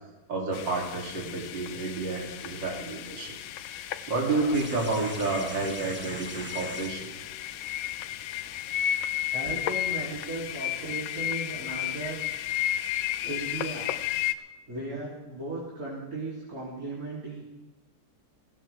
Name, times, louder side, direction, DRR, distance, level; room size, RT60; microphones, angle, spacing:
voice 1, 0.3-3.4 3.7-7.1, right 3 dB, 80° right, -1 dB, 3.5 m, -30 dB
sound 1, 0.5-14.3, left 12 dB, 80° left, 1.3 m, -33 dB
sound 2, 4.2-9.5 10.9-11.0, equal, 5° right, 1.0 m, -43 dB
voice 2, 9.3-12.2 12.6-12.8 13.2-14.0 14.7-17.4, right 2 dB, 50° right, -7 dB, 3.6 m, -36 dB
17.5 x 16.5 x 3.4 m, 1.1 s
omnidirectional pair, 2.0 m